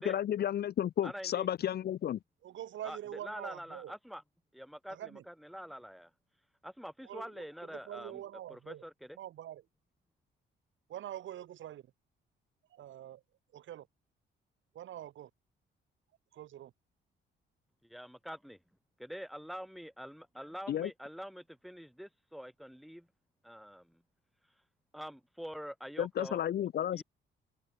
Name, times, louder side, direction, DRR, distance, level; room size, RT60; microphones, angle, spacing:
voice 1, 0.0-2.2 20.7-20.9 26.0-27.0, left 10 dB, 55° left, 0.6 m, -32 dB
voice 2, 1.0-1.5 2.8-3.0 3.2-4.2 4.5-5.0 5.3-6.1 6.6-8.1 8.5-8.9 17.8-18.6 19.0-23.1 23.4-24.0 24.9-26.4 26.9-27.0, equal, ahead, 2.3 m, -45 dB
voice 3, 2.4-4.0 4.9-5.3 7.0-8.8 9.2-9.7 10.9-11.9 12.7-13.2 13.5-13.9 14.7-15.3 16.3-16.7, right 12 dB, 75° right, 3.5 m, -45 dB
open air
cardioid pair, 90°, 20 cm